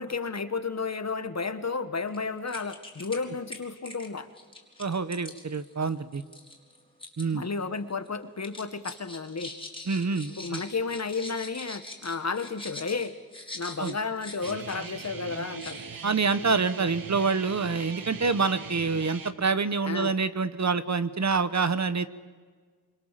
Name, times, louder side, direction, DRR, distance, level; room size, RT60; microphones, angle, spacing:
voice 1, 0.0-4.3 7.3-9.5 10.4-13.1 13.5-15.8 19.8-20.1, left 4 dB, 45° left, 11 dB, 1.6 m, -32 dB
sound 1, 2.1-2.2 2.5-3.2 3.5-7.3 7.6-8.1 8.4-15.1 15.4-16.0, left 2 dB, 15° left, 4.4 m, -43 dB
voice 2, 4.8-6.2 7.2-7.4 9.9-10.6 13.8-13.9 16.0-22.1, right 4 dB, 50° right, 13 dB, 1.2 m, -27 dB
Guitar, 14.4-19.3, right 5 dB, 70° right, 1.5 m, -40 dB
27.0 x 25.5 x 7.6 m, 1.5 s
wide cardioid pair, 80°, 36 cm